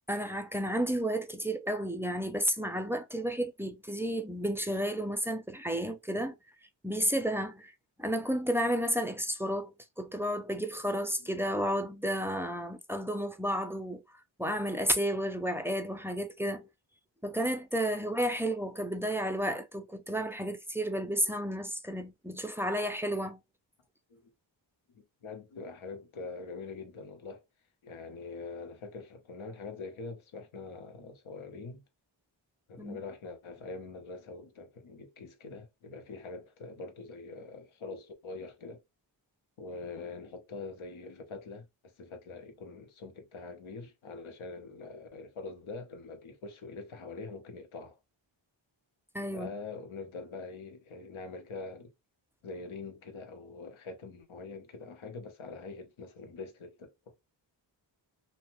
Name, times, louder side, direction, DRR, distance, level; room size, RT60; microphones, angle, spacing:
voice 1, 0.1-6.3 6.8-7.7 8.0-14.0 14.4-16.7 17.2-23.4 32.8-33.0 49.1-49.5, equal, 5° right, 0.4 m, -32 dB
voice 2, 25.2-27.4 27.8-31.8 32.7-38.8 39.6-41.7 42.0-48.0 49.3-51.9 52.4-56.9, left 3 dB, 85° left, 0.9 m, -44 dB
2.8 x 2.1 x 3.0 m
wide cardioid pair, 100°, 47 cm